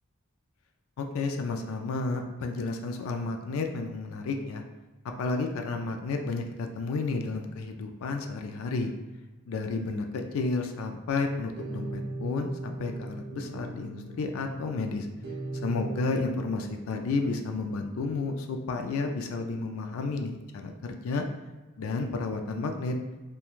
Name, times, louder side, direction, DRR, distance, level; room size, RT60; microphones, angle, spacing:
voice 1, 1.0-4.6 5.2-8.9 9.5-15.1 15.6-21.2 21.8-23.0, left 3 dB, 65° left, 5 dB, 0.3 m, -31 dB
sound 1, 11.5-16.5, right 1 dB, 45° right, 0.5 m, -38 dB
3.0 x 2.2 x 2.3 m, 1.2 s
head